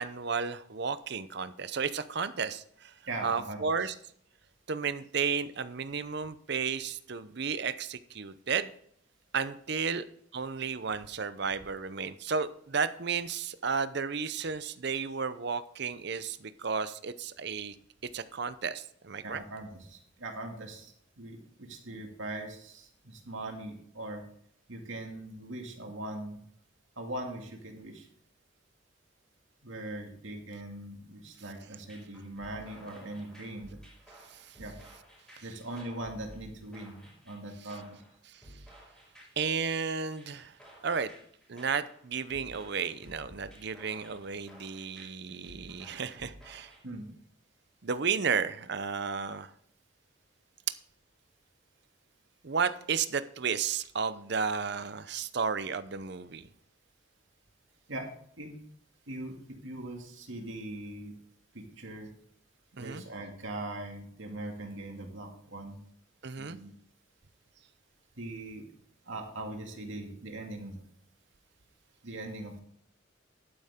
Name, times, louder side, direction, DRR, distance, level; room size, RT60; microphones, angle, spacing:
voice 1, 0.0-2.9 3.2-3.9 4.7-8.7 9.3-10.0 10.3-17.7 18.1-19.4 34.3-34.6 35.4-35.5 38.3-38.4 39.4-40.6 40.8-41.1 41.5-46.7 47.8-49.5 52.4-56.4 62.8-63.0 66.2-66.6, right 5 dB, 55° right, 0.7 m, -33 dB
voice 2, 3.1-3.9 19.2-24.2 24.7-26.4 27.0-28.1 29.6-33.8 34.6-34.7 35.4-37.0 37.3-37.8 46.8-47.1 57.9-58.1 58.4-58.5 59.1-61.1 61.5-62.1 62.8-65.8 66.4-66.7 68.2-68.7 69.1-70.8 72.0-72.6, right 1 dB, 70° right, 2.4 m, -41 dB
sound 1, 31.7-46.8, equal, ahead, 5.6 m, -54 dB
11.5 x 9.8 x 3.7 m
head